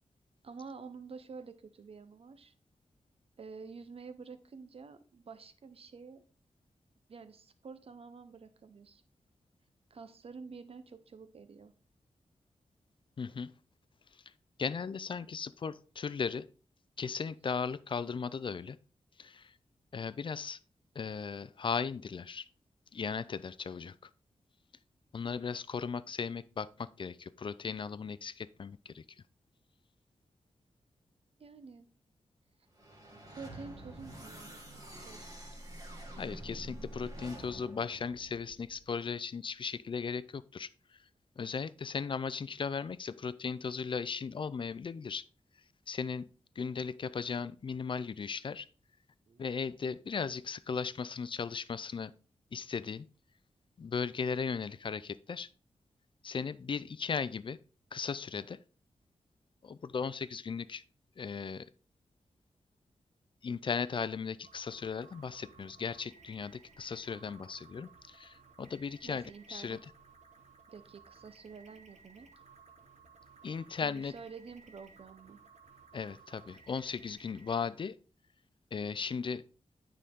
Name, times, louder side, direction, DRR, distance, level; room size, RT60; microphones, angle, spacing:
voice 1, 0.4-2.5 3.4-6.2 7.1-9.0 9.9-11.7 31.4-31.9 33.3-35.3 49.3-49.4 66.8-67.0 69.0-69.8 70.7-72.3 73.8-75.4, right 5 dB, 55° right, 0.8 m, -49 dB
voice 2, 13.2-13.5 14.6-16.5 17.0-18.8 19.2-19.5 19.9-20.6 21.0-22.5 22.9-23.9 25.1-29.0 36.2-40.7 41.4-45.2 45.9-46.3 46.6-48.7 49.4-52.1 52.5-53.1 53.8-55.5 56.2-57.6 57.9-58.6 59.6-60.8 61.2-61.7 63.4-69.8 73.4-74.1 75.9-78.0 78.7-79.4, left 5 dB, 45° left, 0.4 m, -37 dB
sound 1, 32.7-39.0, right 1 dB, 30° right, 1.8 m, -47 dB
sound 2, 64.4-77.6, right 5 dB, 75° right, 1.2 m, -59 dB
9.3 x 5.0 x 3.7 m
wide cardioid pair, 115°, 12 cm